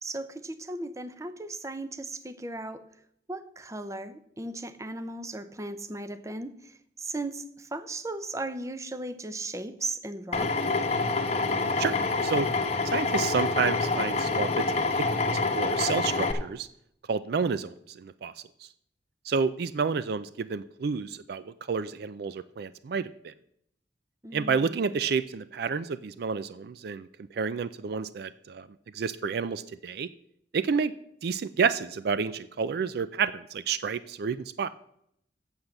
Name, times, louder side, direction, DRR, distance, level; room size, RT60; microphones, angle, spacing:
voice 1, 0.0-2.8 3.3-10.7 24.2-24.9, right 2 dB, 15° right, 11 dB, 0.6 m, -37 dB
Drill, 10.3-16.3, left 3 dB, 35° left, 1.0 m, -27 dB
voice 2, 12.8-15.2 15.5-16.7 17.1-18.3 19.3-23.3 24.3-27.1 27.3-28.7 28.9-30.1 30.5-30.9 31.2-34.7, right 5 dB, 60° right, 14 dB, 0.4 m, -30 dB
8.0 x 7.2 x 6.5 m, 0.72 s
head